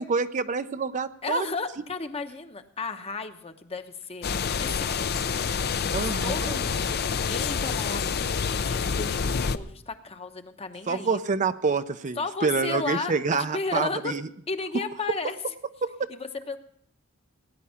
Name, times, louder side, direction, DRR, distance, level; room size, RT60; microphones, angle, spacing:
voice 1, 0.0-1.5 5.9-6.6 10.9-14.2 15.8-16.0, right 4 dB, 35° right, 11 dB, 0.5 m, -27 dB
voice 2, 1.2-11.2 12.2-14.1 14.5-15.4 16.1-16.6, left 4 dB, 30° left, 8 dB, 0.9 m, -34 dB
sound 1, 4.2-9.6, left 6 dB, 50° left, 0.6 m, -27 dB
18.0 x 9.7 x 5.7 m, 0.67 s
head